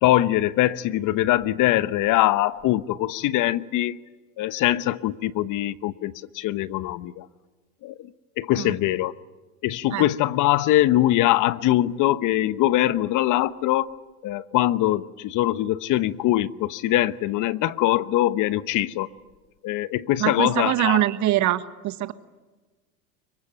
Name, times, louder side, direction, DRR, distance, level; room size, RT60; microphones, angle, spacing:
voice 1, 0.0-4.0 4.4-7.3 7.8-8.1 8.4-9.1 9.6-13.9 14.2-19.1 19.6-21.0, left 14 dB, 45° left, 1.1 m, -22 dB
voice 2, 20.2-22.1, right 14 dB, 40° right, 1.3 m, -23 dB
25.5 x 23.5 x 9.2 m
hypercardioid pair, 100°, 43 cm